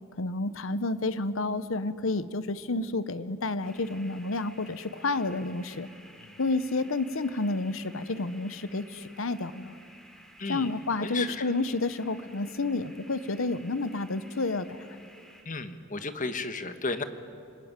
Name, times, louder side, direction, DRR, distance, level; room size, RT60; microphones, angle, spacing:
voice 1, 0.2-5.9 6.4-9.8 10.4-14.9, left 3 dB, 70° left, 14 dB, 1.0 m, -30 dB
sound 1, 3.6-15.4, equal, ahead, 3.1 m, -54 dB
voice 2, 11.0-11.5 15.4-17.0, left 3 dB, 40° left, 9 dB, 1.5 m, -34 dB
26.5 x 19.5 x 9.7 m, 2.6 s
head